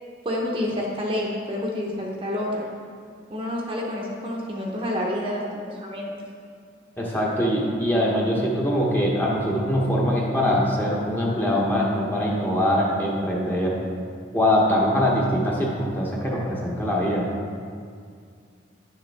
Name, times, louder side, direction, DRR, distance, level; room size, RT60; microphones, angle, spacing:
voice 1, 0.2-2.7 3.3-6.1, left 1 dB, 25° right, -2 dB, 0.8 m, -28 dB
voice 2, 7.0-13.8 14.3-17.3, equal, 10° left, -4 dB, 1.0 m, -23 dB
10.0 x 6.6 x 3.5 m, 2.2 s
head